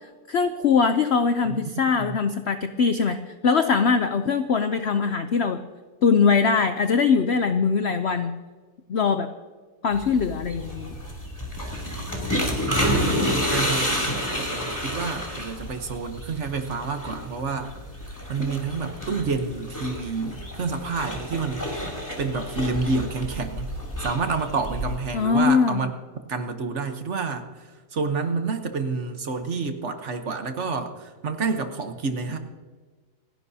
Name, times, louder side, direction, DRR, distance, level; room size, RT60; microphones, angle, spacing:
voice 1, 0.3-3.2 3.4-5.6 6.0-8.4 8.9-9.3 9.8-10.9 25.1-25.8, left 5 dB, 85° left, 9 dB, 0.5 m, -21 dB
sound 1, 9.9-25.0, equal, 10° left, 2.8 m, -30 dB
voice 2, 12.8-17.7 18.3-21.7 22.2-23.7 24.0-25.9 26.3-32.4, right 4 dB, 45° right, 7 dB, 1.2 m, -29 dB
28.5 x 10.5 x 2.8 m, 1.4 s
omnidirectional pair, 1.9 m